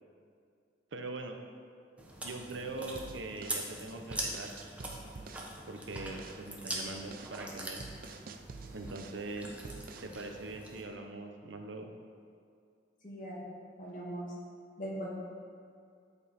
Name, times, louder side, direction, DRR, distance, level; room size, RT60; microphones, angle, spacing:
voice 1, 0.9-1.4 2.2-4.5 5.7-7.8 8.7-9.6 10.0-11.9, right 2 dB, 80° right, 5 dB, 0.8 m, -42 dB
Chewing mastication, 2.0-10.8, right 1 dB, 5° right, 1.0 m, -43 dB
sound 1, 2.9-5.5 5.9-6.4 6.8-9.2 9.6-10.2, right 4 dB, 50° right, 0.4 m, -48 dB
voice 2, 13.0-13.5 13.8-14.3 14.8-15.1, right 1 dB, 45° left, -5 dB, 2.2 m, -40 dB
12.5 x 5.4 x 4.3 m, 2.3 s
head